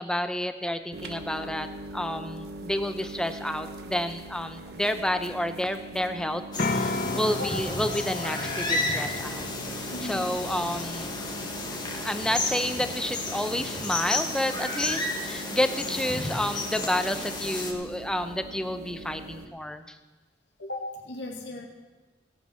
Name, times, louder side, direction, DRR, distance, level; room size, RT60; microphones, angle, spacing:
voice 1, 0.0-6.4 6.7-9.5 9.8-11.1 11.7-20.0, left 1 dB, 5° left, 9 dB, 0.6 m, -30 dB
sound 1, 0.9-19.5, right 2 dB, 60° right, 1.1 m, -42 dB
sound 2, 6.5-17.7, left 2 dB, 25° left, 1.5 m, -32 dB
sound 3, 6.6-18.3, left 3 dB, 45° left, 0.6 m, -38 dB
voice 2, 6.9-7.5 9.9-10.3 20.6-21.7, left 1 dB, 75° left, 0 dB, 2.3 m, -37 dB
16.5 x 8.6 x 5.6 m, 1.2 s
head